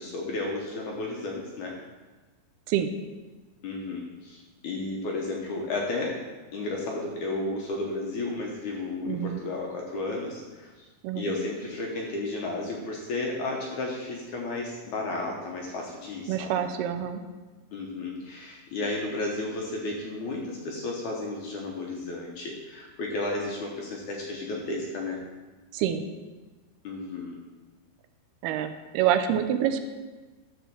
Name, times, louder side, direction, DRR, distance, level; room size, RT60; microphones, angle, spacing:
voice 1, 0.0-1.8 3.6-6.2 6.5-10.9 11.2-16.5 17.7-25.2 26.8-27.4, left 2 dB, 65° left, -1 dB, 2.0 m, -33 dB
voice 2, 9.1-9.4 11.0-11.3 16.3-17.2 25.7-26.0 28.4-29.8, right 10 dB, 80° right, 8 dB, 2.6 m, -26 dB
12.5 x 4.3 x 7.0 m, 1.3 s
omnidirectional pair, 4.5 m